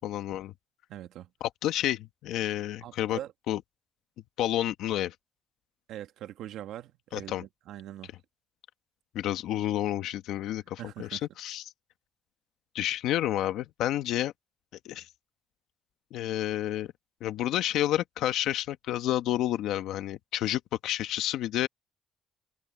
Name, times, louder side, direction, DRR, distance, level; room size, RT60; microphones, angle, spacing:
voice 1, 0.0-0.5 1.4-3.2 3.5-3.6 4.4-5.1 7.1-7.4 9.1-11.6 12.7-14.3 14.8-15.1 16.1-16.9 17.2-21.7, left 13 dB, 90° left, 1.4 m, -30 dB
voice 2, 0.9-1.3 2.8-3.3 5.9-8.1 10.8-11.3, right 12 dB, 85° right, 1.6 m, -42 dB
cardioid pair, 90°, 0 cm